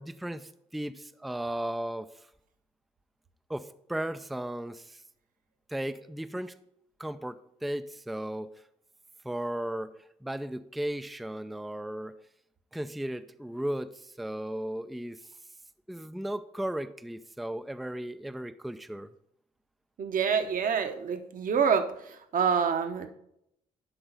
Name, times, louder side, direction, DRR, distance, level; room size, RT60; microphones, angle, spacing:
voice 1, 0.0-2.3 3.5-5.0 5.7-6.5 7.0-8.6 9.2-12.1 12.7-15.2 15.9-19.1, right 1 dB, ahead, 11 dB, 0.4 m, -36 dB
voice 2, 20.0-21.9 22.3-23.1, right 6 dB, 50° right, 7 dB, 1.0 m, -26 dB
10.0 x 3.9 x 5.3 m, 0.76 s
hypercardioid pair, 45°, 18 cm